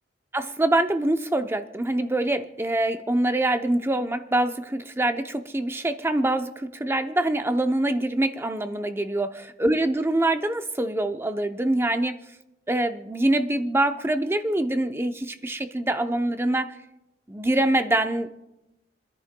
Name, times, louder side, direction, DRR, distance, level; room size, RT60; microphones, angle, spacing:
voice 1, 0.3-9.3 9.6-12.2 12.7-16.7 17.3-18.3, right 1 dB, 15° right, 8 dB, 0.6 m, -24 dB
29.5 x 10.5 x 2.2 m, 0.94 s
head